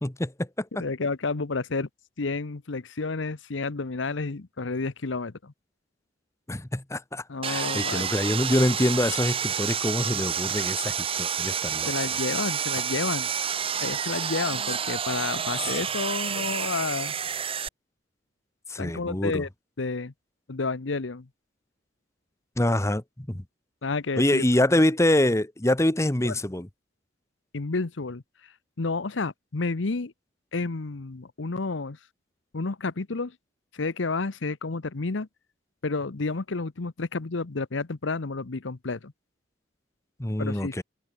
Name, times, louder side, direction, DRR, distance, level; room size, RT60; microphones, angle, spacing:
voice 1, 0.0-0.8 6.5-11.9 18.7-19.4 22.6-23.4 24.2-26.7 40.2-40.8, left 1 dB, 15° left, 1.2 m, -25 dB
voice 2, 0.8-1.9 2.2-5.5 7.3-8.1 11.9-13.3 13.8-17.2 18.8-19.5 19.8-20.1 20.5-21.3 23.8-24.4 26.2-26.3 27.5-28.5 28.8-30.1 30.5-32.0 32.5-33.3 33.7-35.3 35.8-39.1 40.4-40.8, left 3 dB, 75° left, 0.9 m, -30 dB
Sawing, 7.4-17.7, right 8 dB, 30° right, 0.7 m, -29 dB
head